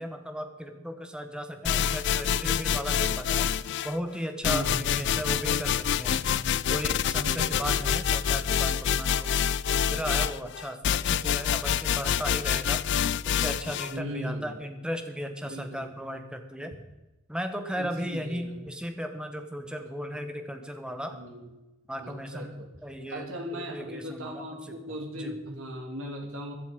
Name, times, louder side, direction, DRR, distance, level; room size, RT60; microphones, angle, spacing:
voice 1, 0.0-3.5 3.8-6.3 6.7-9.3 9.7-12.8 13.2-16.7 17.3-21.2 21.9-22.5 22.8-24.8 25.1-25.3, equal, 5° right, 6 dB, 1.4 m, -36 dB
sound 1, 1.6-3.9 4.4-13.9, left 8 dB, 60° left, 0.4 m, -27 dB
voice 2, 4.5-4.9 7.2-7.8 13.9-14.6 15.4-15.9 17.8-18.6 21.1-21.5 22.0-22.7 23.1-26.5, equal, 85° right, 2 dB, 2.9 m, -37 dB
15.5 x 11.0 x 5.3 m, 1.0 s
head